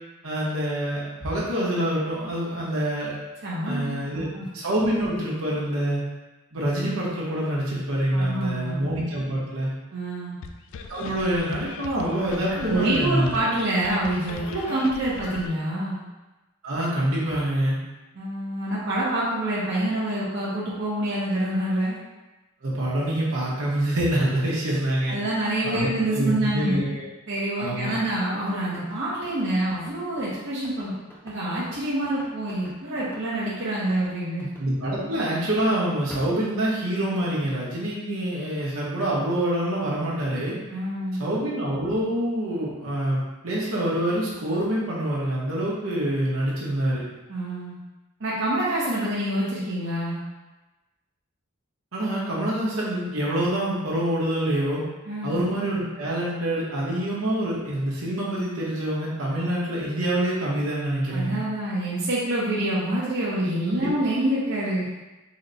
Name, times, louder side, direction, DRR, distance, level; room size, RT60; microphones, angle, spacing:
voice 1, 0.2-3.2 3.6-4.3 4.5-6.0 6.5-9.7 10.9-13.3 16.6-17.8 22.6-25.1 25.6-27.0 27.6-27.9 34.6-40.6 41.2-47.0 51.9-54.8 55.2-61.4 63.7-63.9, right 1 dB, 85° right, -5 dB, 1.1 m, -26 dB
voice 2, 3.4-4.5 8.1-8.9 9.9-10.4 12.6-16.0 18.1-22.0 25.1-26.8 27.3-30.9 31.2-34.5 40.7-41.2 47.3-47.8 48.2-50.2 55.1-55.4 61.1-64.9, right 1 dB, 60° right, -7 dB, 0.8 m, -26 dB
sound 1, 10.4-15.5, left 5 dB, 70° left, 0.3 m, -38 dB
sound 2, 28.5-35.8 36.1-37.2, equal, 10° left, 0.7 m, -46 dB
4.0 x 2.1 x 3.9 m, 1.1 s
head